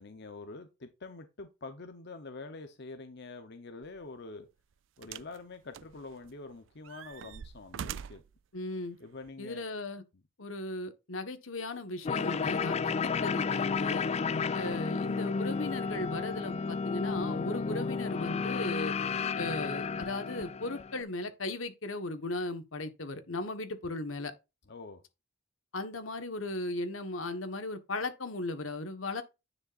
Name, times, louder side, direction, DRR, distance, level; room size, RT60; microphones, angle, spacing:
voice 1, 0.0-4.5 5.0-8.2 9.0-9.6 24.7-25.0, left 3 dB, 55° left, 0.9 m, -46 dB
sound 1, 3.8-4.0 5.0-5.4 5.7-6.4 6.8-8.3 9.2-9.3, right 8 dB, 65° right, 0.4 m, -43 dB
voice 2, 8.5-9.0 9.4-10.0 10.4-14.1 14.5-19.0 19.3-24.3 25.7-29.2, left 2 dB, 85° left, 1.3 m, -37 dB
sound 2, 12.0-21.0, left 5 dB, 35° left, 0.3 m, -32 dB
9.8 x 6.5 x 2.5 m
head